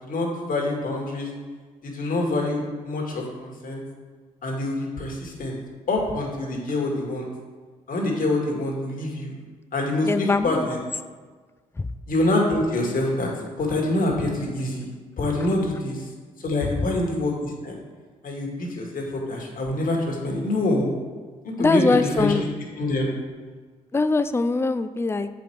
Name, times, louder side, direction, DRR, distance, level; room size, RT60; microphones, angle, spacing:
voice 1, 0.0-1.3 1.8-3.8 4.4-5.5 5.9-7.3 7.9-9.3 9.7-10.8 12.1-13.3 13.6-14.9 15.2-16.0 16.4-17.7 18.2-20.9 21.4-21.8 22.2-22.3 22.8-23.1, left 2 dB, 55° left, -1 dB, 2.0 m, -25 dB
voice 2, 10.0-10.7 11.8-11.9 16.6-16.9 21.6-22.4 23.9-25.3, left 3 dB, 15° left, 11 dB, 0.4 m, -22 dB
7.0 x 5.1 x 4.6 m, 1.5 s
hypercardioid pair, 50°, 17 cm